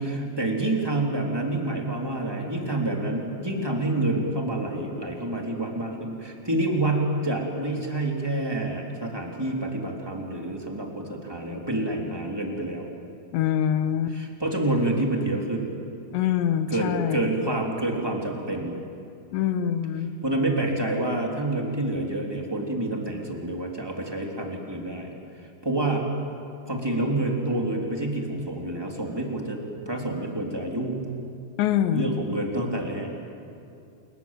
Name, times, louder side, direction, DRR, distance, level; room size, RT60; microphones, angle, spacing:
voice 1, 0.0-12.9 14.1-15.7 16.7-18.8 20.2-25.1 25.6-26.1 26.6-31.0 31.9-33.1, right 2 dB, 5° right, 0 dB, 2.6 m, -28 dB
voice 2, 13.3-14.2 16.1-17.3 19.3-20.1 31.6-32.2, left 9 dB, 85° left, 10 dB, 3.4 m, -25 dB
28.5 x 21.5 x 9.2 m, 2.6 s
omnidirectional pair, 5.0 m